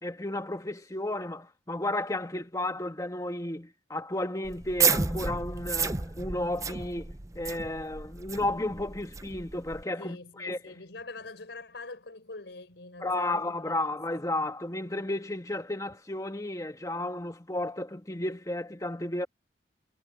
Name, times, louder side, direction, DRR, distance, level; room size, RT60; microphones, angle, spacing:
voice 1, 0.0-10.8 13.0-19.3, left 1 dB, 20° left, 1.6 m, -33 dB
sound 1, 4.4-9.8, right 5 dB, 20° right, 0.6 m, -31 dB
voice 2, 10.0-14.0, left 3 dB, 80° left, 4.2 m, -44 dB
head